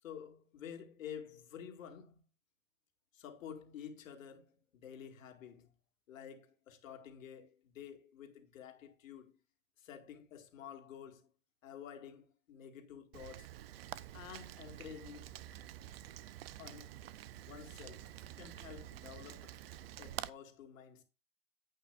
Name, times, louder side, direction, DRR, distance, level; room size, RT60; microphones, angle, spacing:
voice 1, 0.0-2.2 3.1-5.7 6.1-9.4 9.8-11.3 11.6-13.5 14.1-15.3 16.6-17.0 17.5-19.6 20.0-21.0, left 8 dB, 65° left, 2.5 m, -50 dB
Rain, 13.1-20.3, right 13 dB, 45° right, 0.6 m, -48 dB
10.5 x 8.8 x 2.5 m
hypercardioid pair, 140°, 42 cm